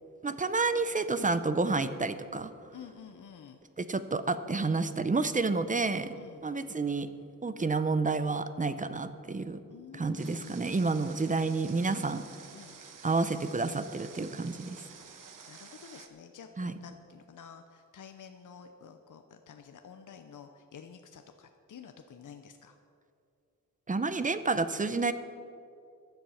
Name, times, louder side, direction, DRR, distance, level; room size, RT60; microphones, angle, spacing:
voice 1, 0.2-2.5 3.8-6.1 6.4-7.1 7.4-9.6 9.9-12.2 13.0-14.8 16.6-16.7 23.9-25.1, right 3 dB, 25° right, 12 dB, 0.6 m, -29 dB
voice 2, 2.7-3.6 6.1-6.4 9.7-11.2 12.5-12.8 15.0-22.8, left 7 dB, 65° left, 6 dB, 0.8 m, -50 dB
Water, 10.2-16.1, right 6 dB, 70° right, 1.1 m, -51 dB
15.0 x 10.5 x 5.7 m, 2.4 s
wide cardioid pair, 165°, 33 cm